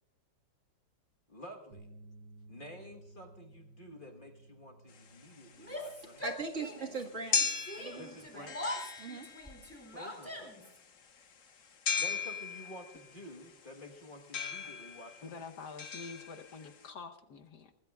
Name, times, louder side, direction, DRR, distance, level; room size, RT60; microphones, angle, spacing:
voice 1, 1.3-1.9 2.5-6.3 7.9-8.8 9.9-10.5 12.0-15.5, left 1 dB, 30° left, 3 dB, 1.3 m, -50 dB
sound 1, 1.7-8.0, right 2 dB, 75° right, 3.2 m, -57 dB
sound 2, 4.9-16.9, left 6 dB, 50° left, 1.4 m, -38 dB
Yell, 5.6-7.0 7.3-10.8, left 1 dB, 5° left, 2.4 m, -43 dB
voice 2, 6.2-8.5 9.0-9.3, right 3 dB, 45° right, 2 dB, 1.8 m, -40 dB
voice 3, 15.2-17.7, left 4 dB, 65° left, 6 dB, 1.4 m, -47 dB
24.0 x 19.5 x 2.3 m, 0.86 s
omnidirectional pair, 2.0 m